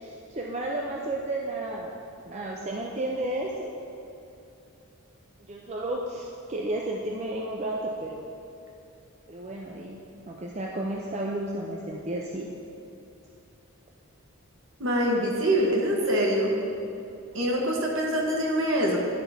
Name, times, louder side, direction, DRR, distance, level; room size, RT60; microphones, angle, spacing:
voice 1, 0.0-1.9 2.2-3.7 5.5-8.2 9.3-10.0 10.3-12.5, right 1 dB, 30° right, -1 dB, 0.4 m, -32 dB
voice 2, 14.8-16.5 17.3-19.0, equal, 60° right, -1 dB, 1.2 m, -24 dB
10.5 x 5.7 x 3.5 m, 2.8 s
head